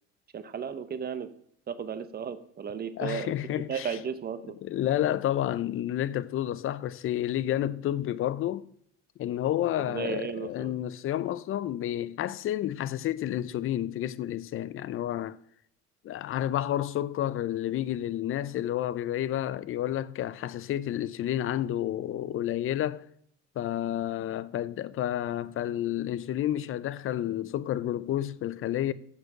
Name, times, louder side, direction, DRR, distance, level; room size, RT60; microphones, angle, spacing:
voice 1, 0.3-1.3 1.7-3.3 3.7-4.5 9.8-10.7, right 7 dB, 30° right, 0.7 m, -34 dB
voice 2, 3.0-4.0 4.6-8.7 9.2-15.4 16.0-23.0 23.6-28.9, left 12 dB, 45° left, 0.6 m, -30 dB
7.3 x 6.5 x 6.1 m
cardioid pair, 120°, 31 cm